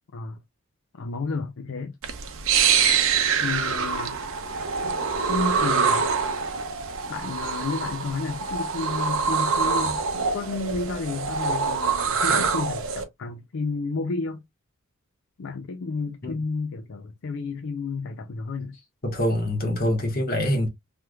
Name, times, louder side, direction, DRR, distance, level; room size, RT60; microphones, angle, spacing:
voice 1, 0.9-2.0 3.4-4.2 4.8-6.1 7.1-14.4 15.4-18.9, left 4 dB, 60° left, 0.4 m, -31 dB
sound 1, 2.0-13.0, right 6 dB, 60° right, 0.7 m, -25 dB
voice 2, 19.0-20.7, equal, 45° left, 1.3 m, -24 dB
3.4 x 3.1 x 2.2 m
head